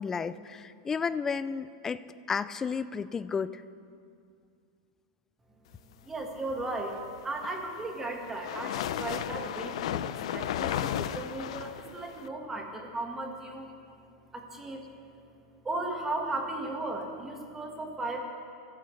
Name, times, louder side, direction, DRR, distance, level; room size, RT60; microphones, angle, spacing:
voice 1, 0.0-2.0 2.3-3.6, left 6 dB, 10° left, 14 dB, 0.3 m, -32 dB
voice 2, 6.1-7.0 7.2-13.7 14.3-14.8 15.6-18.2, right 2 dB, 10° right, 2 dB, 1.6 m, -36 dB
sound 1, 7.2-12.3, left 11 dB, 70° left, 0.5 m, -34 dB
25.0 x 14.5 x 3.3 m, 2.4 s
supercardioid pair, 165°, 3 cm